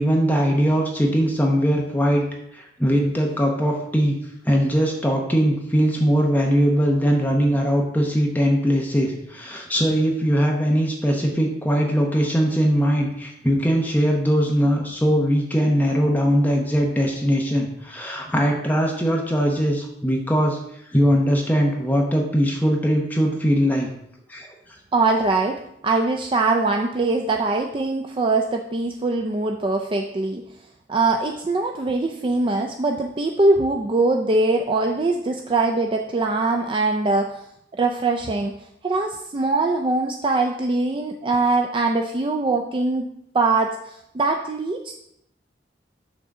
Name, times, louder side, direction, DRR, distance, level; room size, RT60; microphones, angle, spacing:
voice 1, 0.0-2.3 2.5-4.2 4.4-20.6 20.9-23.9 24.3-24.5, equal, 10° left, 0 dB, 0.8 m, -20 dB
voice 2, 24.9-30.4 30.9-37.3 37.8-38.5 38.8-43.1 43.3-44.9, right 3 dB, 30° right, 3 dB, 0.4 m, -22 dB
6.1 x 3.9 x 5.9 m, 0.77 s
head